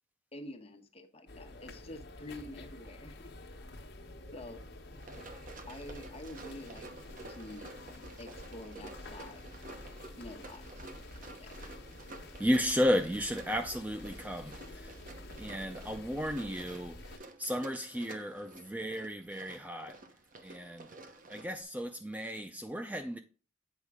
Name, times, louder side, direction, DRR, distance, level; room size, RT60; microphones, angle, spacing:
voice 1, 0.3-3.3 4.3-4.6 5.7-6.9 7.3-7.7 8.2-9.9 10.1-10.9 11.2-11.7, left 1 dB, 30° left, 1.2 m, -48 dB
sound 1, 1.3-17.2, left 2 dB, 55° left, 1.2 m, -49 dB
Run, 4.9-21.6, right 2 dB, 45° right, 0.9 m, -51 dB
voice 2, 12.4-15.0 15.4-20.0 20.4-20.9 21.3-23.2, equal, 10° right, 0.4 m, -34 dB
8.2 x 5.3 x 3.6 m
head